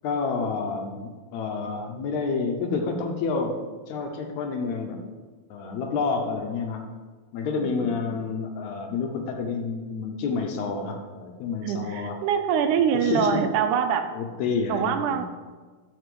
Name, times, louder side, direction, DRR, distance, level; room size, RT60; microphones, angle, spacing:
voice 1, 0.0-3.6 3.9-5.0 5.5-6.8 7.3-12.2 12.9-13.5 14.2-15.2, left 4 dB, 75° left, 4 dB, 2.1 m, -29 dB
voice 2, 11.6-14.1 14.7-15.2, right 8 dB, 80° right, 7 dB, 2.1 m, -24 dB
7.9 x 4.5 x 6.8 m, 1.4 s
omnidirectional pair, 3.6 m